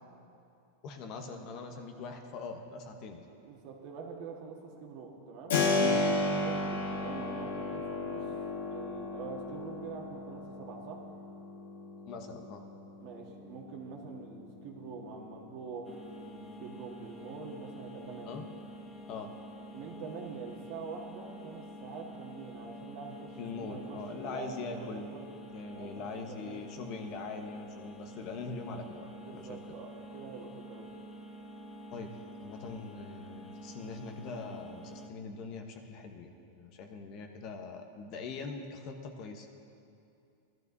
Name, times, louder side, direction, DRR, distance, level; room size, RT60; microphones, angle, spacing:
voice 1, 0.8-3.2 5.8-6.0 12.1-12.6 18.3-18.4 19.1-19.3 23.4-25.1 25.5-29.0 29.3-29.7 31.9-39.5, left 4 dB, 45° left, 5 dB, 1.0 m, -42 dB
voice 2, 3.4-5.6 6.4-8.3 8.7-11.0 13.0-18.4 19.7-25.3 25.7-26.6 29.2-30.9, right 5 dB, 55° right, 0 dB, 1.6 m, -45 dB
Keyboard (musical), 5.5-16.2, left 2 dB, 85° left, 1.5 m, -34 dB
sound 1, 15.8-35.1, equal, 15° left, 0.7 m, -48 dB
17.0 x 12.0 x 2.7 m, 2.6 s
supercardioid pair, 140°, 0 cm